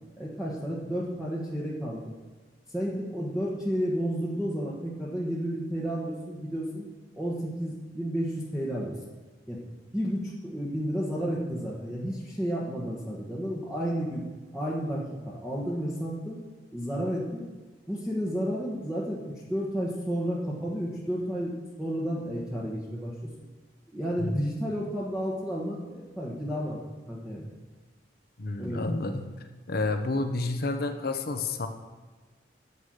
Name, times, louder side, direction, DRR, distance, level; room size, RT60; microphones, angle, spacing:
voice 1, 0.2-2.1 2.7-6.9 7.1-8.9 9.5-9.6 9.9-14.2 14.5-16.4 16.7-17.4 17.9-19.2 19.5-23.1 23.9-26.8 27.1-27.4 28.6-28.8, equal, 5° right, -6 dB, 1.4 m, -31 dB
voice 2, 28.4-29.3 29.7-31.7, left 2 dB, 55° left, 6 dB, 0.9 m, -30 dB
9.9 x 7.2 x 6.4 m, 1.3 s
head